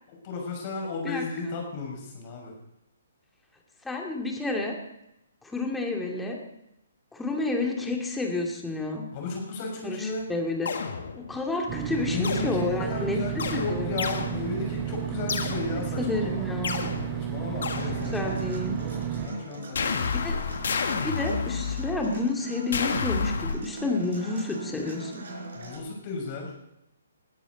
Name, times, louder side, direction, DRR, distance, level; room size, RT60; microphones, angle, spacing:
voice 1, 0.1-2.5 9.1-10.3 12.0-16.5 17.1-20.2 25.5-26.5, left 3 dB, 35° left, 1 dB, 6.2 m, -34 dB
voice 2, 3.8-4.7 5.4-6.4 7.1-9.0 9.8-10.7 11.1-13.2 13.5-14.0 16.0-16.9 18.0-18.8 20.1-20.4 21.0-25.2, left 2 dB, 5° left, 0 dB, 2.5 m, -30 dB
sound 1, 10.7-11.4 12.2-13.0 13.4-14.8 15.3-16.0 16.6-18.5 19.7-22.2 22.7-23.5, left 5 dB, 55° left, 1.8 m, -31 dB
sound 2, 11.7-19.3, right 9 dB, 20° right, 1.4 m, -32 dB
Human voice / Acoustic guitar, 17.8-25.8, right 3 dB, 55° right, 4.7 m, -39 dB
21.5 x 13.0 x 4.1 m, 0.84 s
figure-of-eight pair, 130°, 0 cm